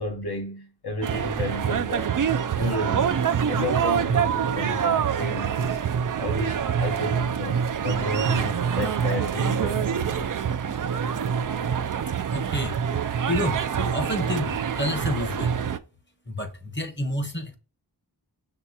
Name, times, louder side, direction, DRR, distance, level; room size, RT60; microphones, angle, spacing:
voice 1, 0.0-2.2 2.6-3.2 3.5-5.8 6.2-10.3, left 2 dB, 65° left, 1.3 m, -32 dB
sound 1, 1.0-15.8, right 7 dB, 55° right, 0.4 m, -25 dB
voice 2, 12.3-15.6 16.3-17.5, left 1 dB, 30° left, 1.0 m, -30 dB
5.9 x 3.1 x 2.8 m
wide cardioid pair, 65°, 41 cm